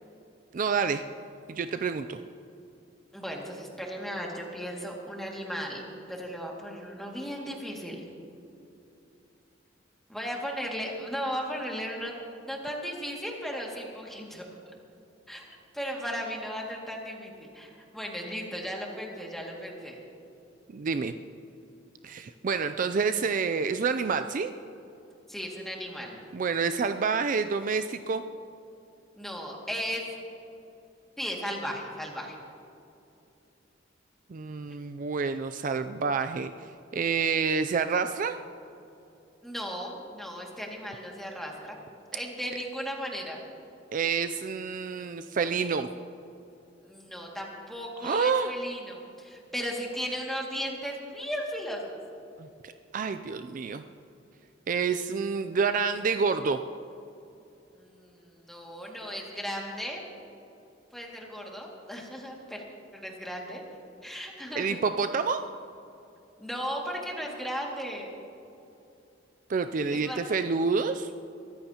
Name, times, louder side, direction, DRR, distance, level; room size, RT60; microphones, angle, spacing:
voice 1, 0.5-1.0 1.5-2.2 20.7-21.1 22.0-24.5 26.3-28.2 34.3-36.5 36.9-38.4 43.9-45.9 48.0-48.5 52.4-53.8 54.7-56.6 64.5-65.4 69.5-71.1, right 5 dB, 45° right, 9 dB, 0.4 m, -28 dB
voice 2, 3.1-5.8 6.1-8.0 10.1-12.1 12.5-14.7 15.3-20.0 25.3-26.2 29.2-30.1 31.2-32.4 39.4-41.8 42.1-43.4 46.8-52.0 57.7-60.0 60.9-62.6 62.9-63.6 64.0-64.8 66.4-68.1 69.9-70.2, equal, ahead, -2 dB, 2.1 m, -36 dB
23.0 x 14.5 x 2.9 m, 2.7 s
head